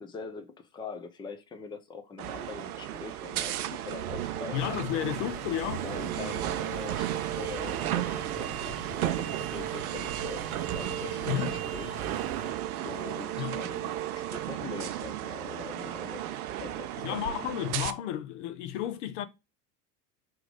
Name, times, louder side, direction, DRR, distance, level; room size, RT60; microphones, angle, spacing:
voice 1, 0.0-4.6 5.8-10.4 10.7-12.0 12.8-17.2, left 4 dB, 10° left, 0.6 m, -43 dB
sound 1, 2.2-17.9, right 12 dB, 70° right, 0.6 m, -34 dB
sound 2, 4.5-12.5, equal, 90° left, 1.3 m, -45 dB
voice 2, 4.5-5.8 11.3-11.5 13.4-13.6 17.0-19.3, left 11 dB, 50° left, 0.6 m, -32 dB
3.7 x 3.0 x 3.6 m
figure-of-eight pair, 80°, 47 cm